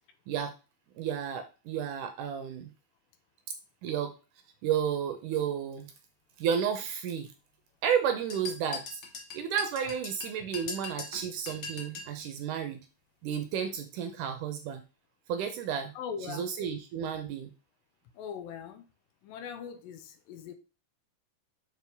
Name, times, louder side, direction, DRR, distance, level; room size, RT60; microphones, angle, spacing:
voice 1, 1.0-2.7 3.8-4.1 4.6-5.9 6.4-7.3 7.8-9.0 9.3-12.8 13.2-14.8 15.3-15.9 16.2-17.5, right 8 dB, 75° right, 2.0 m, -32 dB
sound 1, 8.3-12.2, left 4 dB, 55° left, 1.4 m, -41 dB
voice 2, 16.0-16.5 18.2-18.8 19.2-20.5, left 7 dB, 80° left, 2.4 m, -40 dB
6.7 x 4.6 x 3.4 m
omnidirectional pair, 4.1 m